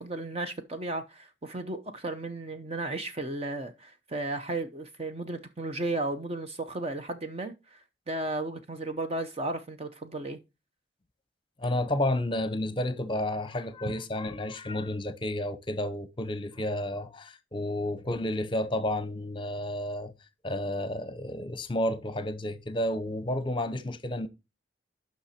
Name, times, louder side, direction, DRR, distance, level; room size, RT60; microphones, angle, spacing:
voice 1, 0.0-7.8 8.1-10.4 13.9-14.0, right 2 dB, 30° right, 0.7 m, -34 dB
voice 2, 11.6-20.1 20.4-24.3, left 1 dB, 25° left, 0.8 m, -31 dB
8.6 x 5.8 x 4.3 m
head